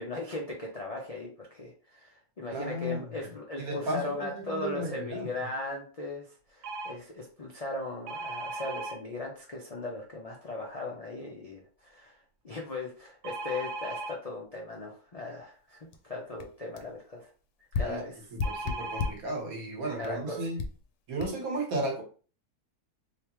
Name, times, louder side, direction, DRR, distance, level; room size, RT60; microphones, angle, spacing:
voice 1, 0.0-12.2 12.4-17.3 17.8-18.3 20.0-20.5, left 2 dB, 60° left, -2 dB, 0.4 m, -38 dB
voice 2, 2.5-3.0 3.6-5.3 17.8-18.0 18.3-20.6 21.1-22.0, right 2 dB, 65° right, 1 dB, 1.5 m, -34 dB
sound 1, 6.6-6.9 8.1-9.0 13.2-14.1 18.4-19.1 19.9-20.0 20.3-20.5, right 2 dB, 85° right, 1.1 m, -37 dB
sound 2, 15.9-16.0 16.4-16.5 16.8-16.9 17.7-19.3 20.0-20.2 20.6-20.8 21.2-21.3, left 4 dB, 80° left, 1.1 m, -33 dB
3.4 x 2.8 x 2.9 m, 0.39 s
omnidirectional pair, 1.6 m